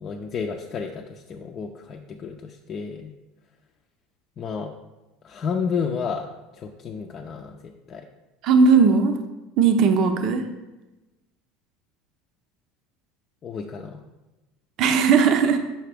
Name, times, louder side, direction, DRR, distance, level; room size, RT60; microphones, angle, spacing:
voice 1, 0.0-3.1 4.4-4.7 5.2-6.3 6.6-7.6 7.9-8.0 13.4-14.0, left 6 dB, 45° left, 1 dB, 0.5 m, -31 dB
voice 2, 8.4-9.2 9.6-10.4 14.8-15.6, right 5 dB, 55° right, 6 dB, 0.7 m, -17 dB
5.7 x 5.5 x 3.4 m, 1.1 s
hypercardioid pair, 80°, 0 cm